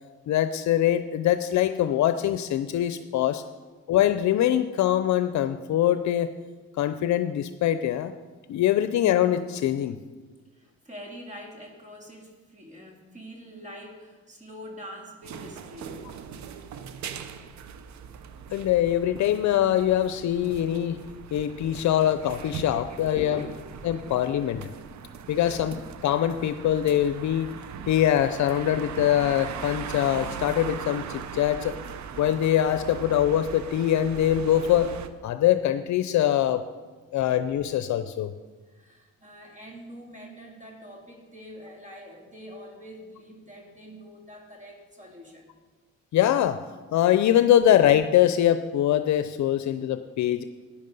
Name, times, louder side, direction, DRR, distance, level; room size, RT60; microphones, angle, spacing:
voice 1, 0.3-3.4 3.9-6.3 6.7-8.1 8.5-9.9 18.5-21.0 21.3-23.4 23.8-24.7 25.3-27.5 27.9-31.8 32.2-34.9 35.2-36.6 37.1-38.3 46.1-46.6 46.9-50.4, left 11 dB, 70° left, 10 dB, 0.6 m, -23 dB
voice 2, 10.5-16.1 22.9-23.7 38.7-45.6, equal, 25° right, 1 dB, 2.4 m, -44 dB
sound 1, 15.2-35.1, right 7 dB, 65° right, 0.9 m, -40 dB
12.0 x 9.8 x 5.4 m, 1.3 s
cardioid pair, 90°, 30 cm